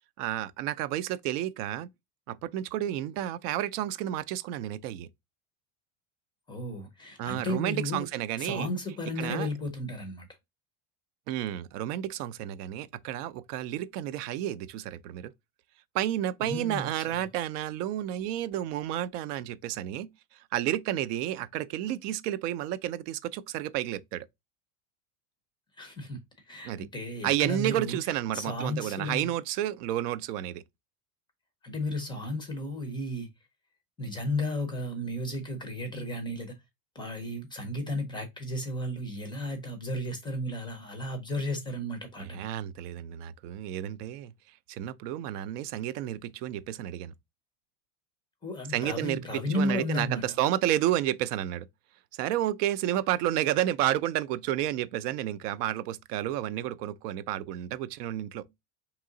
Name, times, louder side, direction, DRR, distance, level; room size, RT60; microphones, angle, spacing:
voice 1, 0.2-1.9 2.3-5.1 7.2-8.7 9.2-9.5 11.3-15.3 15.9-24.3 26.6-26.9 27.2-30.6 42.2-44.3 44.7-47.1 48.7-51.7 52.1-58.5, right 12 dB, 85° right, 0.5 m, -31 dB
voice 2, 6.5-8.1 8.4-10.3 16.4-17.2 25.8-26.2 26.5-28.0 28.3-29.3 31.6-33.3 34.0-36.5 37.0-42.5 48.4-50.2, left 1 dB, 10° left, 0.4 m, -34 dB
3.6 x 2.9 x 3.7 m
supercardioid pair, 150°, 45 cm